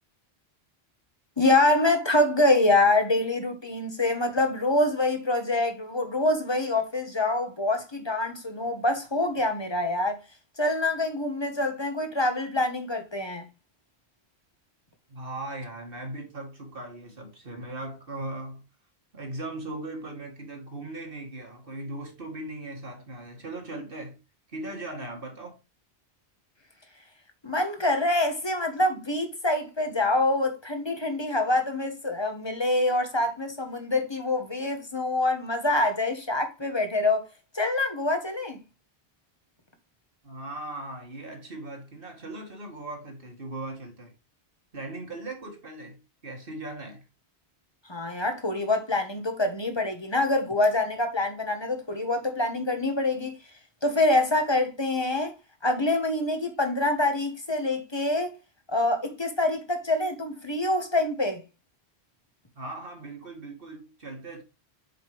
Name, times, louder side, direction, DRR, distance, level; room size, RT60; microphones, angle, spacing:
voice 1, 1.4-10.2 10.6-13.5 27.4-37.3 37.5-38.6 47.8-53.4 53.8-55.4 55.6-58.4 58.7-61.4, left 2 dB, 25° left, 1.3 m, -25 dB
voice 2, 15.1-18.6 19.1-24.2 24.5-25.6 40.2-44.1 44.7-47.1 62.6-64.4, right 2 dB, 60° right, 2.0 m, -38 dB
6.8 x 5.1 x 3.3 m
omnidirectional pair, 1.1 m